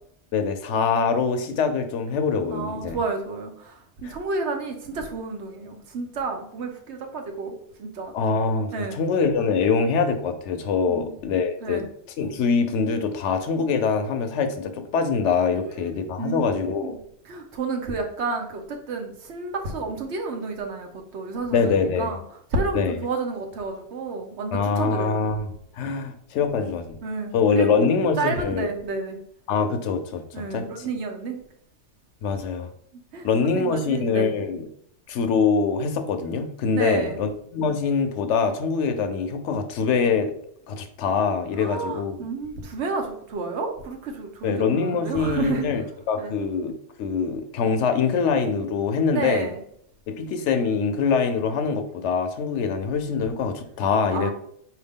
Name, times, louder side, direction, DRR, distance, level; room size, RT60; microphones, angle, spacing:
voice 1, 0.3-3.0 4.0-4.2 8.1-11.8 12.2-17.0 21.5-22.1 22.7-23.0 24.5-25.5 25.7-27.0 27.3-28.7 29.5-30.9 32.2-32.7 33.2-34.7 35.1-40.3 40.7-42.1 44.4-49.5 50.1-54.3, left 5 dB, 75° left, 8 dB, 0.9 m, -24 dB
voice 2, 2.5-7.5 7.8-8.1 8.7-9.0 10.9-11.1 11.6-11.8 15.5-16.9 17.2-22.2 22.5-25.2 25.9-26.1 26.5-26.7 27.0-27.9 28.2-29.2 30.3-31.4 33.1-33.3 33.5-34.3 36.7-37.2 41.6-45.9 46.2-46.3 49.1-49.6 54.1-54.3, right 3 dB, 70° right, 4 dB, 1.0 m, -31 dB
4.5 x 2.8 x 3.5 m, 0.67 s
omnidirectional pair, 1.2 m